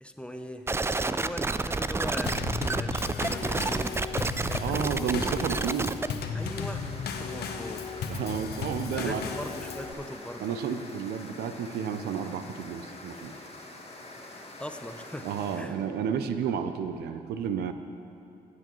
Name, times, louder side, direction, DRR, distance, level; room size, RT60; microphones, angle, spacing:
voice 1, 0.0-0.7 1.0-4.0 4.5-5.2 6.3-7.8 8.9-10.4 14.6-15.3 15.5-15.7, left 1 dB, 5° left, 6 dB, 0.7 m, -40 dB
sound 1, 0.7-6.1, right 3 dB, 15° right, 0.3 m, -29 dB
Drum kit / Snare drum / Bass drum, 2.3-9.9, left 6 dB, 80° left, 0.7 m, -35 dB
voice 2, 4.6-6.0 8.1-9.2 10.4-13.4 15.2-17.7, right 7 dB, 85° right, 9 dB, 0.5 m, -31 dB
sound 2, 6.4-15.6, left 2 dB, 40° left, 1.5 m, -46 dB
16.0 x 8.1 x 3.0 m, 2.8 s
supercardioid pair, 55°, 16 cm